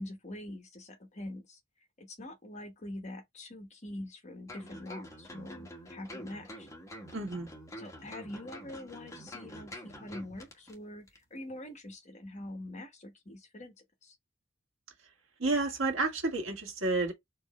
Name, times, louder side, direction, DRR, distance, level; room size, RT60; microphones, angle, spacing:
voice 1, 0.0-1.6 2.0-6.7 7.8-13.7 14.0-14.2, left 1 dB, 35° left, 1.2 m, -44 dB
sound 1, 4.5-10.8 11.1-11.2, equal, 15° left, 1.4 m, -47 dB
voice 2, 7.1-7.5 15.4-17.1, right 3 dB, 85° right, 1.6 m, -30 dB
4.5 x 2.7 x 4.2 m
head